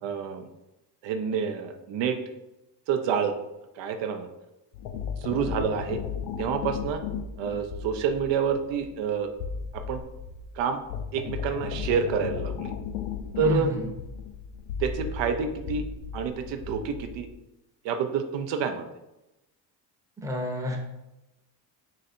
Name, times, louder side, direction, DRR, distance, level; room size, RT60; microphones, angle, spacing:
voice 1, 0.0-0.5 1.0-2.2 2.9-3.4 3.8-4.3 5.2-6.0 6.4-7.0 7.4-9.3 9.7-10.0 10.6-10.8 11.1-12.7 13.4-13.8 14.8-15.9 16.1-17.3 17.8-18.8, right 6 dB, 75° right, 6 dB, 0.6 m, -28 dB
sound 1, 4.7-17.4, left 7 dB, 75° left, 0.6 m, -35 dB
voice 2, 13.4-13.8 20.2-20.8, left 2 dB, 5° right, 0 dB, 0.7 m, -29 dB
3.9 x 2.6 x 4.1 m, 0.94 s
cardioid pair, 120°, 44 cm